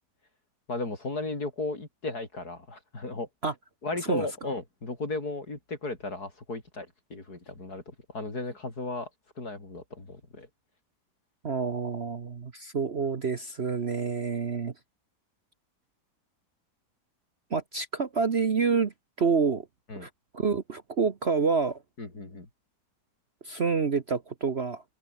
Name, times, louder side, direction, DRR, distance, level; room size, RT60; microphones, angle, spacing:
voice 1, 0.7-3.3 3.8-9.1 9.4-10.5 19.9-20.1 22.0-22.5, left 2 dB, 65° left, 5.5 m, -35 dB
voice 2, 11.4-14.7 17.5-18.9 19.2-19.7 20.0-21.8 23.4-24.8, right 5 dB, 40° right, 1.4 m, -28 dB
omnidirectional pair, 1.8 m